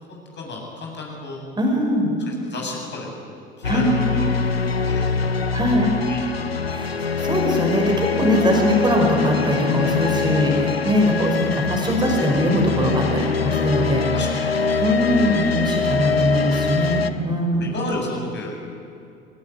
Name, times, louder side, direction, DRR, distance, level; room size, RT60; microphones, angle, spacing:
voice 1, 0.1-1.4 2.3-5.3 6.1-6.3 6.8-7.2 14.1-14.8 17.1-17.3 17.6-18.5, left 2 dB, 35° left, -1 dB, 8.0 m, -33 dB
voice 2, 1.6-2.1 3.6-4.0 5.5-6.0 6.7-6.9 7.2-14.0 14.8-17.7, equal, 15° right, 0 dB, 6.0 m, -21 dB
sound 1, 3.6-17.1, left 5 dB, 85° left, 0.7 m, -23 dB
22.5 x 21.5 x 9.9 m, 2.5 s
figure-of-eight pair, 60°, 29 cm